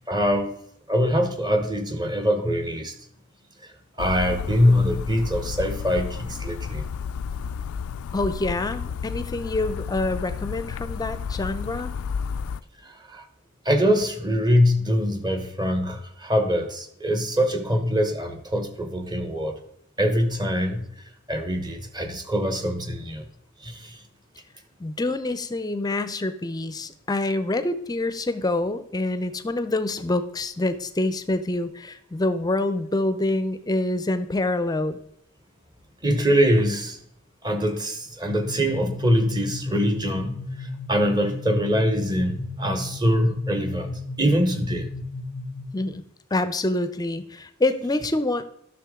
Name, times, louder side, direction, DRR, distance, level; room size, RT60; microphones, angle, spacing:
voice 1, 0.1-0.5 0.9-2.9 4.0-6.8 12.8-13.2 13.6-19.5 20.0-20.9 21.3-23.3 23.6-24.0 36.0-37.0 37.4-44.9, equal, 20° right, 7 dB, 0.9 m, -23 dB
sound 1, 4.0-12.6, left 6 dB, 75° left, 0.3 m, -32 dB
voice 2, 8.1-11.9 24.8-35.0 45.7-46.0 46.3-48.4, left 2 dB, 20° left, 12 dB, 0.5 m, -26 dB
sound 2, 38.3-45.8, left 2 dB, 45° right, 4.3 m, -34 dB
11.5 x 6.4 x 3.6 m, 0.73 s
head